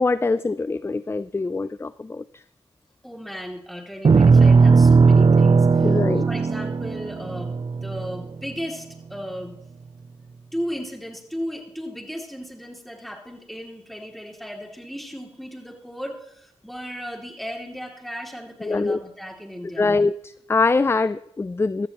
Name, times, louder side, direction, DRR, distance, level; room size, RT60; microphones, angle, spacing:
voice 1, 0.0-2.2 5.8-6.3 18.6-19.0 19.8-21.9, left 3 dB, 20° left, 17 dB, 0.4 m, -23 dB
voice 2, 3.0-9.5 10.5-19.9, equal, ahead, 3 dB, 2.7 m, -35 dB
sound 1, 4.0-8.5, right 4 dB, 40° right, 0.5 m, -17 dB
15.0 x 13.5 x 3.0 m, 0.75 s
cardioid pair, 50°, 12 cm